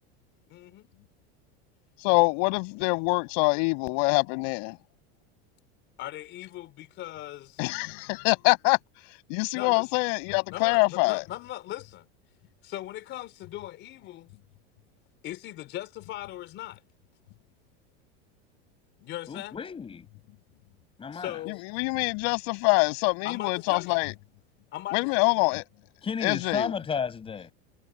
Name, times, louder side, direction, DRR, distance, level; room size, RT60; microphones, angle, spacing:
voice 1, 0.5-0.9 6.0-7.5 9.5-9.8 10.5-12.0 12.6-14.3 15.2-16.8 19.0-19.6 21.1-21.6 23.2-24.0 24.7-25.0, left 14 dB, 40° left, 4.2 m, -39 dB
voice 2, 2.0-4.8 7.6-8.8 9.3-11.2 21.5-24.1 24.9-25.6 26.2-26.7, left 33 dB, 55° left, 7.4 m, -25 dB
voice 3, 19.3-20.1 21.0-21.4 26.0-27.5, left 6 dB, 20° left, 7.0 m, -32 dB
supercardioid pair, 155°, 30 cm